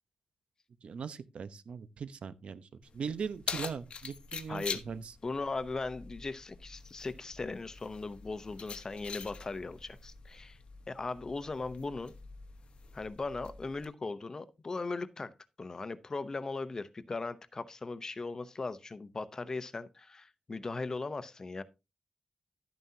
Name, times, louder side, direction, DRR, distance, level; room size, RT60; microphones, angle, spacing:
voice 1, 0.8-2.7 2.9-5.1, right 6 dB, 75° right, 0.9 m, -40 dB
Keys jangling, 2.8-13.8, left 5 dB, 65° left, 1.0 m, -45 dB
voice 2, 4.5-4.8 5.2-10.6 10.9-12.1 12.9-21.6, left 3 dB, 30° left, 0.7 m, -38 dB
12.5 x 9.4 x 2.8 m
wide cardioid pair, 165°, 2 cm